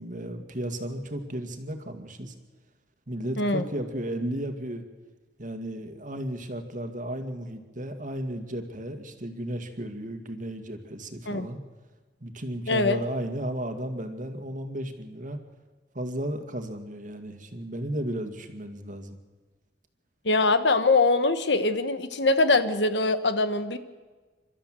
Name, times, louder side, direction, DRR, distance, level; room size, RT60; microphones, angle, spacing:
voice 1, 0.0-2.3 3.1-4.8 5.4-11.6 12.2-15.4 15.9-19.2, right 1 dB, 45° right, 7 dB, 2.0 m, -34 dB
voice 2, 12.7-13.0 20.2-23.8, left 3 dB, 70° left, 11 dB, 1.3 m, -23 dB
28.5 x 13.0 x 7.6 m, 1.3 s
head